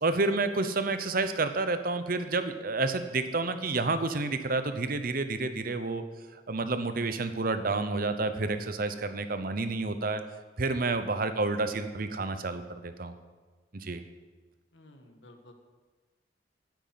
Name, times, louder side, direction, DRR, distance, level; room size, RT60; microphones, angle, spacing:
voice 1, 0.0-6.0 6.5-10.2 10.6-13.1 13.7-14.0, right 3 dB, 50° right, 10 dB, 0.9 m, -29 dB
voice 2, 14.7-15.5, left 2 dB, 85° left, 4 dB, 1.6 m, -52 dB
9.4 x 9.2 x 7.6 m, 1.4 s
head